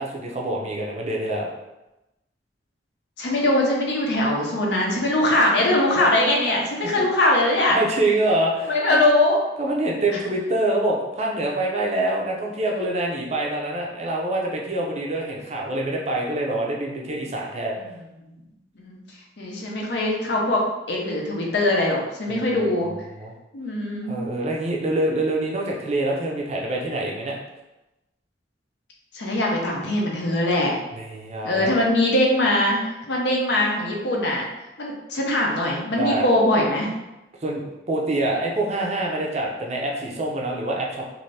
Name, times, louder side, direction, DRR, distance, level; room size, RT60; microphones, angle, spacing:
voice 1, 0.0-1.5 6.8-7.1 7.7-9.1 9.6-17.8 22.3-22.6 23.2-23.3 24.1-27.4 30.9-31.8 36.0-36.3 37.4-41.1, right 1 dB, 35° right, -1 dB, 0.5 m, -25 dB
voice 2, 3.2-7.8 8.7-9.4 18.8-19.0 19.4-20.6 20.9-22.9 23.5-24.1 29.1-30.8 31.4-34.5 34.8-36.9, left 1 dB, 65° left, -1 dB, 0.7 m, -21 dB
2.7 x 2.6 x 3.2 m, 0.98 s
head